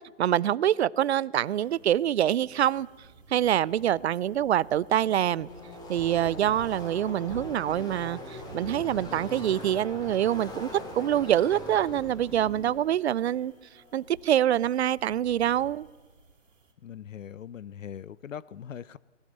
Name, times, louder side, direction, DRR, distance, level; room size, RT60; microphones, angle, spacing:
voice 1, 0.2-2.9 3.3-5.5 5.9-10.7 10.9-13.5 13.9-15.9, right 11 dB, 60° right, 0.6 m, -25 dB
sound 1, 1.4-16.7, right 3 dB, 85° right, 3.2 m, -50 dB
Car passing by / Race car auto racing, 4.3-14.7, left 1 dB, 10° left, 2.7 m, -43 dB
voice 2, 16.8-19.0, left 9 dB, 85° left, 0.7 m, -41 dB
18.5 x 17.5 x 8.0 m
hypercardioid pair, 140°, 38 cm